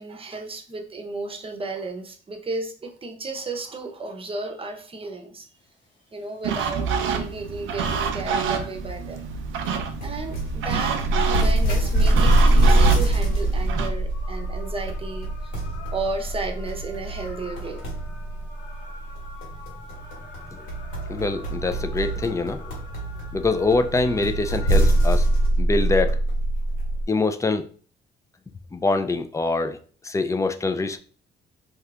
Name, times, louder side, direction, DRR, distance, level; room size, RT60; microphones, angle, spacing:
voice 1, 0.0-5.5 6.1-9.2 9.7-9.8 10.0-15.6 15.9-17.8, right 3 dB, 30° right, 3 dB, 0.7 m, -33 dB
sound 1, 5.6-25.5, left 3 dB, 70° left, 0.9 m, -48 dB
sound 2, 6.4-13.9, right 6 dB, 85° right, 0.5 m, -28 dB
sound 3, 9.6-27.1, right 1 dB, 90° left, 1.5 m, -23 dB
voice 2, 21.1-22.7 23.3-25.3 25.6-26.2 27.1-27.7 28.7-29.8 30.0-31.0, left 3 dB, 15° left, 8 dB, 0.3 m, -24 dB
2.8 x 2.4 x 3.2 m, 0.43 s
cardioid pair, 90°, 20 cm